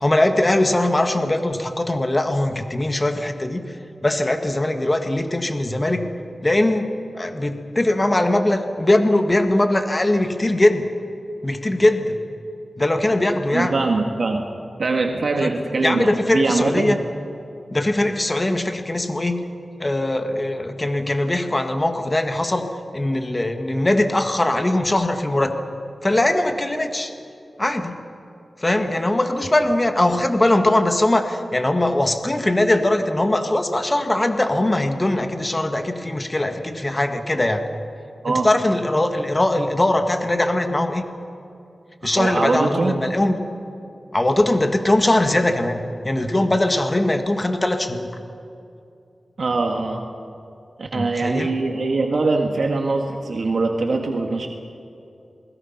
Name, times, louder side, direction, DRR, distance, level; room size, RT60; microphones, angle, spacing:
voice 1, 0.0-3.7 4.0-6.1 6.4-10.9 11.4-12.2 12.8-13.7 15.4-15.5 15.8-17.0 17.7-19.4 19.8-22.7 22.9-25.5 26.0-27.1 27.6-28.0 28.6-37.7 38.3-41.0 42.0-43.4 44.1-48.1 50.9-51.5, left 1 dB, 25° left, 6 dB, 1.7 m, -21 dB
voice 2, 13.5-14.5 14.8-17.0 38.2-38.5 42.0-43.0 49.4-50.1 50.8-54.5, right 3 dB, 65° right, 2 dB, 1.8 m, -22 dB
28.0 x 21.0 x 5.9 m, 2.6 s
wide cardioid pair, 90°, 0 cm